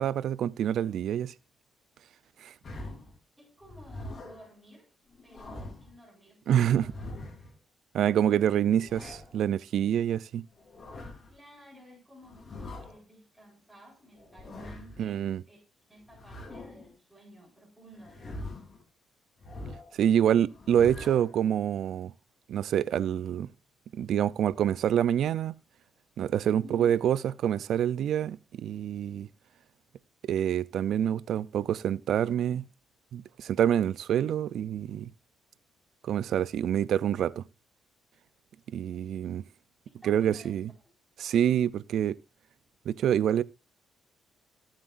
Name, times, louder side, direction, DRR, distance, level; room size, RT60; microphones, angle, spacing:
voice 1, 0.0-1.3 2.4-2.5 6.5-6.8 7.9-10.4 15.0-15.4 19.9-22.1 22.5-23.5 23.9-25.5 26.2-29.3 30.2-32.6 33.1-35.1 36.0-37.4 38.7-39.5 40.0-40.7 41.2-42.2 42.9-43.4, right 10 dB, 70° right, 0.5 m, -26 dB
sound 1, 2.6-3.2 3.6-4.5 5.1-5.9 6.6-7.5 8.5-9.4 10.5-11.3 12.2-13.0 14.1-15.0 16.1-16.9 17.9-18.8 19.4-20.0 20.5-21.3, left 2 dB, 40° left, 3.5 m, -43 dB
voice 2, 3.4-4.9 5.2-6.4 6.7-7.1 11.3-12.4 12.8-18.5 26.6-27.0 40.0-40.5, equal, ahead, 4.9 m, -53 dB
18.5 x 7.4 x 2.6 m
cardioid pair, 90°, 0 cm